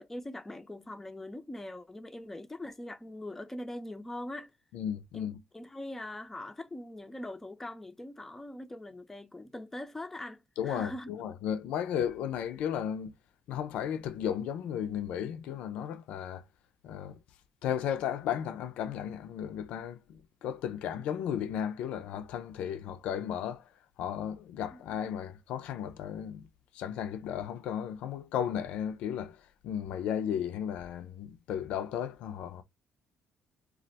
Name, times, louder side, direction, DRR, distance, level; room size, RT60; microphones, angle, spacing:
voice 1, 0.0-4.6 5.1-5.3 5.5-11.1 24.7-24.8, left 1 dB, 15° left, 0.5 m, -42 dB
voice 2, 4.7-5.4 10.6-13.1 13.5-16.4 16.8-17.2 17.6-23.7 24.0-26.5 26.7-32.6, left 9 dB, 80° left, 0.4 m, -34 dB
2.4 x 2.1 x 3.9 m
supercardioid pair, 70°, 2 cm